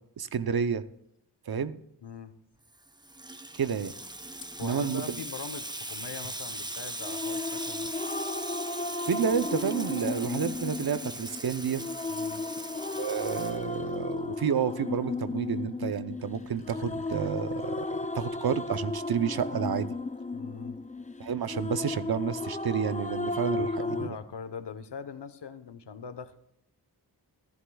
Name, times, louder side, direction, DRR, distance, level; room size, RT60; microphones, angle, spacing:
voice 1, 0.2-0.8 1.5-1.8 3.5-3.9 4.6-5.2 9.1-11.8 13.0-19.9 21.2-24.2, right 7 dB, 60° right, 13 dB, 0.8 m, -30 dB
voice 2, 2.0-2.4 4.6-7.9 12.1-12.4 20.3-20.8 23.5-26.4, left 5 dB, 75° left, 11 dB, 1.1 m, -42 dB
Water tap faucet / Sink (filling or washing), 2.7-14.2, right 1 dB, 10° right, 0.8 m, -40 dB
sound 1, 7.0-24.1, left 3 dB, 20° left, 0.5 m, -34 dB
sound 2, 15.0-15.1 15.3-15.4 15.7-19.8, right 2 dB, 35° right, 3.4 m, -56 dB
15.0 x 14.5 x 2.3 m, 0.75 s
wide cardioid pair, 100°, 41 cm